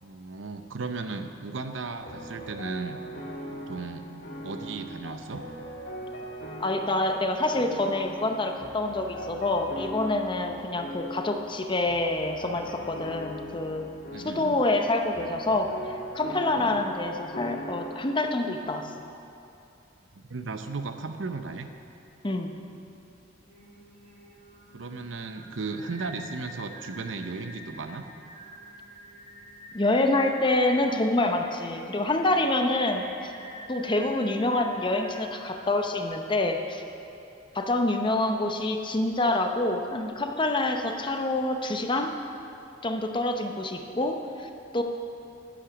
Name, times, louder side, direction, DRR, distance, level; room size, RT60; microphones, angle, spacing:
voice 1, 0.0-3.0 3.5-4.1 4.4-5.4 13.0-13.1 14.1-14.6 16.6-16.8 20.2-21.7 24.7-28.0, right 4 dB, 75° right, 7 dB, 0.7 m, -36 dB
sound 1, 1.9-18.0, equal, 55° left, 1.6 m, -40 dB
voice 2, 6.6-13.9 14.2-18.9 22.2-22.5 29.7-33.3 33.7-36.8 37.5-42.1 42.8-44.8, left 2 dB, 25° left, 5 dB, 0.7 m, -27 dB
Singing, 23.5-36.1, equal, 35° right, 2.9 m, -48 dB
10.0 x 8.7 x 6.2 m, 2.7 s
head